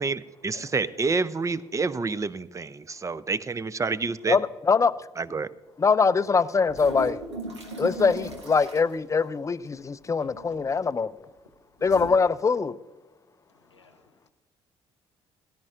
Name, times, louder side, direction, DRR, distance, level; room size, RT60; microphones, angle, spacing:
voice 1, 0.0-4.4 5.2-5.5, right 4 dB, 20° right, 0.6 m, -28 dB
voice 2, 0.5-1.0 6.1-6.2 10.4-10.8 13.5-14.3, left 3 dB, 90° left, 1.0 m, -53 dB
voice 3, 4.3-4.9 5.8-7.2 7.8-11.1 11.8-12.8, left 5 dB, 20° left, 0.5 m, -23 dB
sound 1, 6.6-8.9 10.2-10.6 11.8-12.1, right 2 dB, 85° right, 1.4 m, -37 dB
18.5 x 11.0 x 2.5 m
figure-of-eight pair, 50°, 14 cm